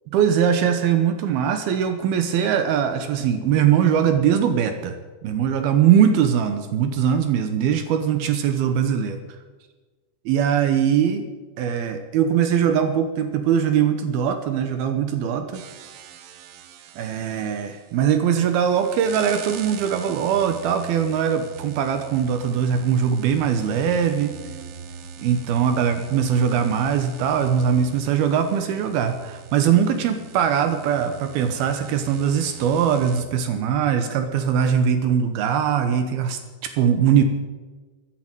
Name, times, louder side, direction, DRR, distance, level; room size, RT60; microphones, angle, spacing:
voice 1, 0.1-5.0 5.2-9.2 10.3-11.2 11.6-15.6 17.0-24.4 25.2-37.2, right 8 dB, 70° right, 8 dB, 2.4 m, -21 dB
sound 1, 15.5-33.2, right 7 dB, 90° right, 3.5 m, -42 dB
13.5 x 10.5 x 8.9 m, 1.3 s
omnidirectional pair, 5.2 m